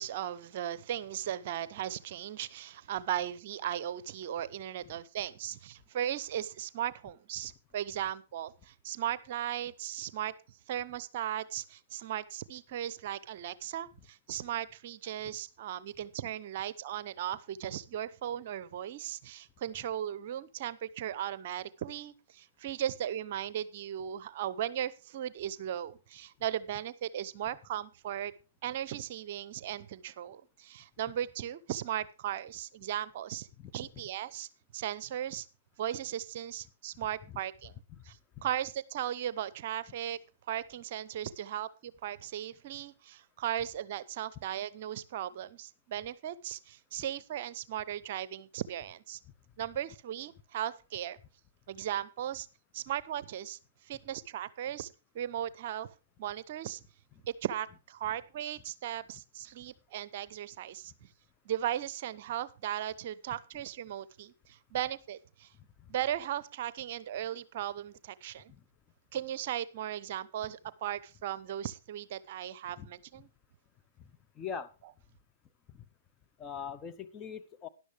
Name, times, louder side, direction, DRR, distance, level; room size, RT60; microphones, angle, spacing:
voice 1, 0.0-28.3 28.6-33.5 33.7-34.5 34.7-35.5 35.8-37.7 38.0-40.2 40.5-49.2 49.6-51.2 51.7-52.5 52.7-53.6 53.8-54.9 55.1-56.8 57.2-61.1 61.4-65.5 65.9-68.5 69.1-73.3, right 11 dB, 50° right, 18 dB, 0.7 m, -37 dB
voice 2, 74.3-74.7 75.7-75.8 76.4-77.7, left 7 dB, 20° left, 8 dB, 0.9 m, -42 dB
12.5 x 11.0 x 3.4 m, 0.30 s
hypercardioid pair, 120°, 0 cm